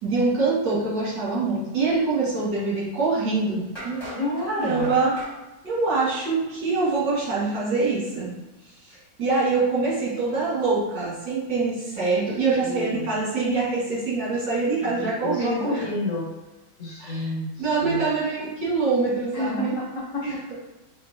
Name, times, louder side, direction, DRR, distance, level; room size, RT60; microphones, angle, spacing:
voice 1, 0.0-4.0 4.4-5.2 5.6-8.3 9.2-15.7 17.0-17.3 17.6-19.7 20.2-20.6, right 3 dB, 75° right, -7 dB, 2.1 m, -24 dB
sound 1, 2.9-3.0 3.8-5.4, right 1 dB, 15° left, 1.4 m, -38 dB
voice 2, 4.1-5.0 12.1-12.3 12.6-13.1 14.8-16.3 16.8-18.1 19.3-20.5, left 1 dB, 50° left, -5 dB, 1.3 m, -31 dB
4.6 x 2.9 x 2.6 m, 1.0 s
omnidirectional pair, 1.9 m